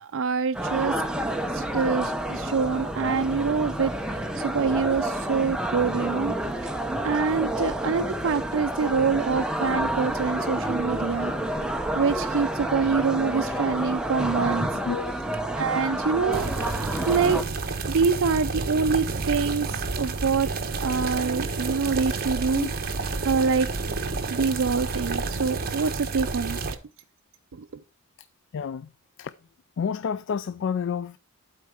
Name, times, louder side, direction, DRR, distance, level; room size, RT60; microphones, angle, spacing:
voice 1, 0.0-6.3 7.0-11.3 12.0-14.7 15.6-16.7 17.1-17.4 17.9-20.5 20.8-23.0 23.2-23.7 24.3-26.6 27.5-27.7, right 5 dB, 60° right, 0.4 m, -26 dB
sound 1, 0.5-17.4, right 1 dB, 5° right, 0.7 m, -29 dB
sound 2, 16.3-26.7, right 3 dB, 45° right, 1.1 m, -30 dB
voice 2, 28.5-28.9 29.2-29.3 29.8-31.2, left 6 dB, 55° left, 0.3 m, -29 dB
11.5 x 4.5 x 4.7 m
head